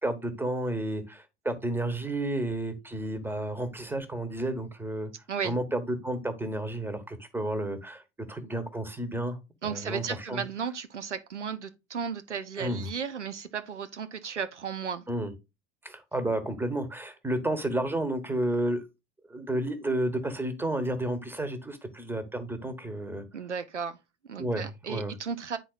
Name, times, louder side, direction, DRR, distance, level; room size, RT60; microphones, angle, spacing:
voice 1, 0.0-5.1 5.4-8.0 8.3-10.4 12.6-12.9 15.1-15.3 15.8-18.8 19.3-23.2 24.4-25.1, right 1 dB, 5° right, 1.2 m, -31 dB
voice 2, 9.6-15.0 23.3-24.0 24.3-25.6, right 6 dB, 85° right, 0.6 m, -34 dB
10.5 x 4.1 x 2.3 m
figure-of-eight pair, 70°, 34 cm